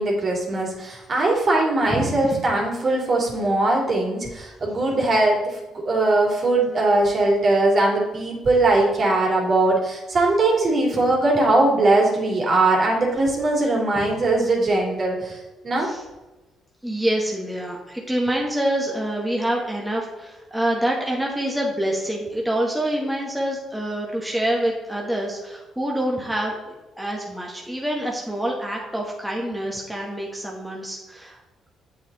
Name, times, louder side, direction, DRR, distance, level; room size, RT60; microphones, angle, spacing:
voice 1, 0.0-15.9, right 2 dB, 45° right, -2 dB, 3.3 m, -20 dB
voice 2, 1.9-2.4 14.0-14.1 15.8-16.0 16.8-31.4, right 1 dB, 5° right, -2 dB, 1.8 m, -26 dB
7.9 x 7.4 x 4.2 m, 1.1 s
supercardioid pair, 65°, 0 cm